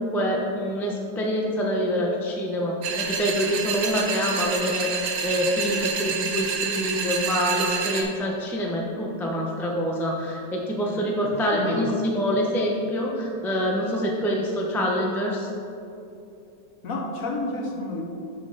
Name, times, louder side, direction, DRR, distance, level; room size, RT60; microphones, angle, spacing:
voice 1, 0.0-4.9 5.2-15.5, equal, 5° left, -1 dB, 0.3 m, -26 dB
sound 1, 2.8-8.0, right 6 dB, 90° right, 1.6 m, -28 dB
voice 2, 11.2-11.9 16.8-18.0, left 2 dB, 55° left, 1 dB, 1.1 m, -30 dB
11.0 x 4.3 x 5.0 m, 2.7 s
omnidirectional pair, 2.0 m